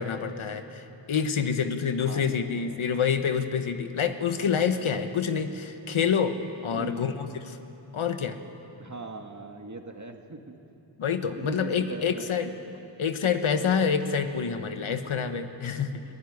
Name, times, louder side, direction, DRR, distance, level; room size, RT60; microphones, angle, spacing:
voice 1, 0.0-6.4 6.6-7.6 7.9-8.4 11.0-12.6 13.0-16.0, left 6 dB, 90° left, 8 dB, 1.3 m, -27 dB
voice 2, 2.0-2.8 6.7-7.2 8.8-10.6 11.4-12.3, right 3 dB, 35° right, 5 dB, 1.9 m, -40 dB
24.0 x 15.5 x 9.7 m, 2.9 s
cardioid pair, 50°, 47 cm